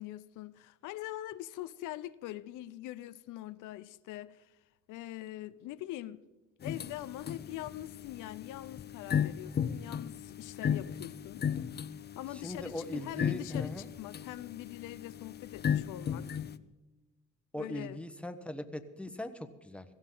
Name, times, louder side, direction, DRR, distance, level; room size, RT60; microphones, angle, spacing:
voice 1, 0.0-4.5 4.9-6.2 6.6-11.4 12.2-16.4 17.6-18.0, left 14 dB, 90° left, 0.6 m, -43 dB
sound 1, 6.6-16.6, left 8 dB, 35° left, 0.5 m, -36 dB
voice 2, 12.3-13.9 17.5-19.8, left 1 dB, 5° left, 1.0 m, -40 dB
17.0 x 15.0 x 3.8 m
cardioid pair, 90°, 30 cm